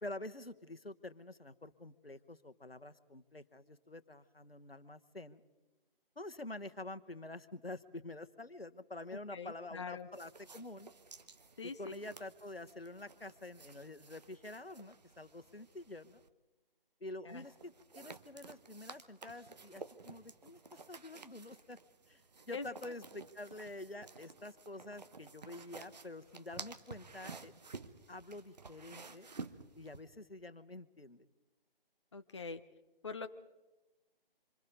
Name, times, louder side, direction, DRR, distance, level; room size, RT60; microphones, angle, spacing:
voice 1, 0.0-5.4 6.2-10.9 11.6-16.2 17.0-21.8 22.1-22.2 22.5-27.5 28.1-29.3 29.8-31.3, left 2 dB, 85° left, 11 dB, 1.3 m, -48 dB
voice 2, 9.3-10.1 11.6-11.9 17.2-17.4 22.5-22.7 32.1-32.6 33.0-33.3, left 4 dB, 30° left, 9 dB, 0.6 m, -43 dB
sound 1, 10.1-16.3 17.3-30.0, right 4 dB, 45° right, 1.1 m, -53 dB
26.5 x 26.5 x 4.0 m, 1.1 s
figure-of-eight pair, 150°, 29 cm